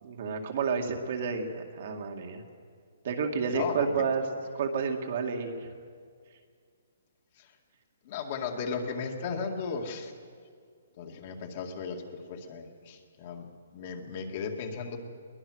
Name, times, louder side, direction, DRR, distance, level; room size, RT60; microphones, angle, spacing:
voice 1, 0.0-2.4 3.0-4.2 4.5-5.7, right 5 dB, 50° right, 3 dB, 2.1 m, -30 dB
voice 2, 3.5-4.0 7.4-7.5 8.0-10.1 11.0-12.0 12.3-13.5 13.7-15.0, left 5 dB, 40° left, 3 dB, 2.1 m, -35 dB
22.0 x 19.0 x 6.4 m, 2.1 s
hypercardioid pair, 165°, 0 cm